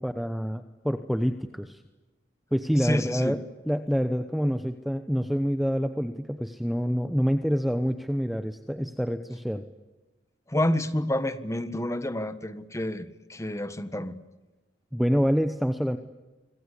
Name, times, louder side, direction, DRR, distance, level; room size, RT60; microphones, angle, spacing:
voice 1, 0.0-1.8 2.5-3.4 3.7-9.6 14.9-16.0, equal, ahead, 9 dB, 0.9 m, -27 dB
voice 2, 2.8-3.4 10.5-14.1, left 1 dB, 15° left, 11 dB, 1.5 m, -29 dB
26.0 x 25.5 x 8.5 m, 1.1 s
head